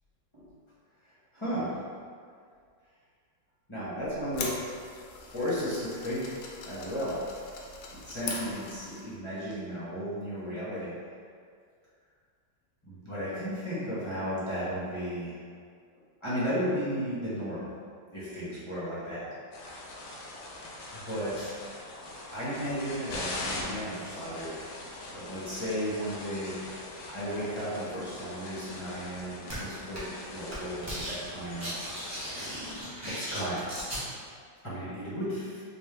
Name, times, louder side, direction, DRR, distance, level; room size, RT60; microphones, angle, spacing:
voice 1, 1.3-1.8 3.7-4.5 5.3-6.4 6.7-7.2 7.9-10.9 12.8-15.3 16.2-17.6 18.1-19.2 20.9-21.6 22.3-24.5 25.1-26.6 27.1-31.8 33.1-33.6 34.6-35.6, equal, 20° left, -11 dB, 0.8 m, -34 dB
sound 1, 4.0-9.1, left 3 dB, 75° left, 1.1 m, -41 dB
sound 2, 19.5-32.8, left 2 dB, 90° left, 1.3 m, -42 dB
sound 3, 29.5-29.6 29.9-30.2 30.5-31.2 31.4-34.0, equal, 20° right, 0.4 m, -37 dB
3.6 x 2.9 x 3.3 m, 2.1 s
omnidirectional pair, 1.9 m